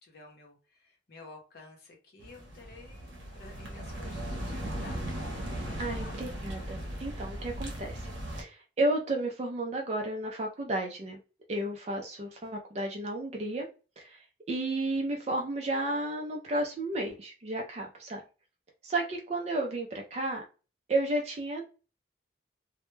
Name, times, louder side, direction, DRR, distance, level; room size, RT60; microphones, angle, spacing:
voice 1, 0.0-5.0 5.7-6.2, left 2 dB, 55° left, 1 dB, 0.7 m, -51 dB
sound 1, 2.2-8.4, right 1 dB, 85° right, 0.7 m, -38 dB
voice 2, 5.8-11.2 11.5-13.7 14.0-18.2 18.8-20.4 20.9-21.7, right 2 dB, 35° right, 2 dB, 0.4 m, -32 dB
2.1 x 2.1 x 3.0 m, 0.33 s
head